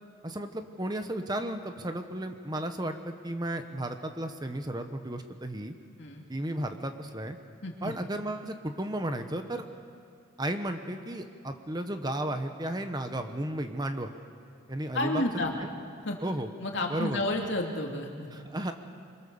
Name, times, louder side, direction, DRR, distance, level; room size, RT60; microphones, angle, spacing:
voice 1, 0.2-5.7 6.3-7.4 7.8-9.7 10.4-14.1 14.7-15.2 15.6-15.7 16.2-16.5 16.9-17.2 18.3-18.7, right 1 dB, 20° right, 7 dB, 1.1 m, -34 dB
voice 2, 7.6-7.9 14.9-15.5 16.0-16.2 16.6-18.3, left 1 dB, 65° left, 1 dB, 2.9 m, -31 dB
27.5 x 23.5 x 7.1 m, 2.3 s
head